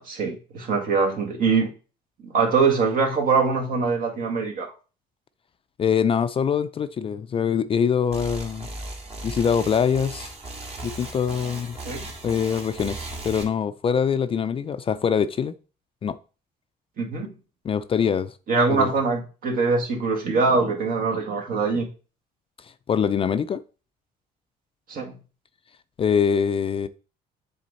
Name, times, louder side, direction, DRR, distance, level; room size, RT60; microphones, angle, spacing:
voice 1, 0.0-1.7 2.2-4.7 11.9-12.0 17.0-17.3 18.5-21.9 24.9-25.2, right 4 dB, 55° right, 1.9 m, -23 dB
voice 2, 5.8-8.7 9.2-10.3 10.8-11.8 12.2-15.5 16.0-16.2 17.6-18.3 18.7-19.0 22.9-23.6 26.0-26.9, left 7 dB, 35° left, 0.4 m, -23 dB
sound 1, 8.1-13.4, right 2 dB, 40° right, 1.9 m, -37 dB
7.5 x 3.8 x 4.1 m
cardioid pair, 110°, 17 cm